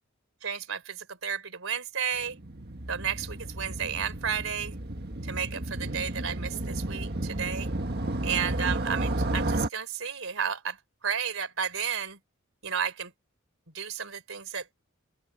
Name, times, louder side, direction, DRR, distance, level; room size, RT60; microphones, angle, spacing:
voice 1, 0.4-2.4 2.9-4.7 5.2-7.7 8.2-10.8 11.0-12.2 12.6-13.1 13.7-14.6, right 7 dB, 70° right, 4.1 m, -32 dB
Motorcycle, 2.1-9.7, right 1 dB, 50° right, 1.7 m, -32 dB
open air
head